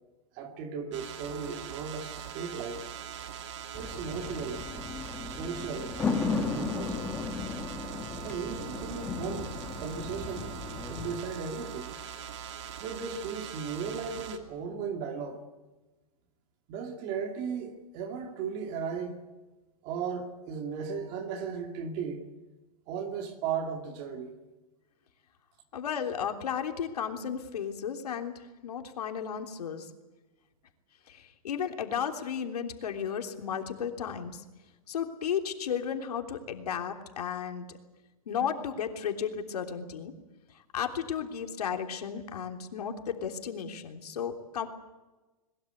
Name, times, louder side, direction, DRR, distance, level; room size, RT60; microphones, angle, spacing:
voice 1, 0.3-2.8 3.7-4.6 5.2-7.2 8.2-10.5 10.9-11.9 12.8-15.4 16.7-19.2 19.8-22.3 22.9-24.4, right 6 dB, 25° right, 2.3 m, -36 dB
sound 1, 0.9-14.4, right 9 dB, 50° right, 2.6 m, -42 dB
sound 2, 3.7-11.2, left 4 dB, 10° left, 1.3 m, -35 dB
voice 2, 25.7-28.3 28.6-29.9 31.1-34.4 34.9-37.7 38.3-40.1 40.7-44.7, left 7 dB, 90° left, 3.3 m, -34 dB
22.0 x 21.5 x 8.1 m
supercardioid pair, 175°, 19 cm